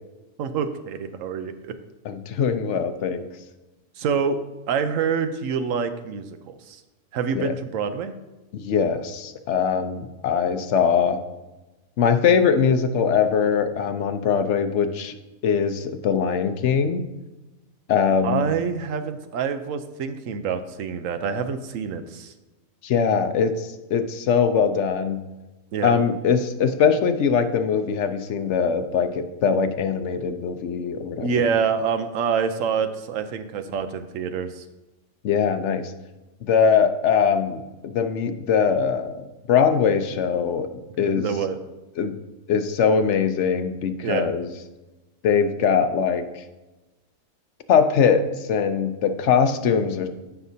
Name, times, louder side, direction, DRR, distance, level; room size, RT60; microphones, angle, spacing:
voice 1, 0.4-1.7 4.0-4.4 4.7-6.8 7.1-8.1 18.2-22.3 25.7-25.9 31.2-34.6 41.0-41.6 44.0-44.3, right 6 dB, 75° right, 9 dB, 1.1 m, -26 dB
voice 2, 2.0-3.3 7.3-7.5 8.5-11.2 12.0-15.1 15.4-17.0 17.9-18.4 22.8-25.2 25.8-31.3 35.2-35.9 36.4-40.7 41.0-41.3 42.0-42.2 42.5-44.5 45.2-46.4 47.7-50.1, left 6 dB, 65° left, 8 dB, 1.0 m, -22 dB
14.5 x 5.9 x 2.8 m, 1.1 s
omnidirectional pair, 1.4 m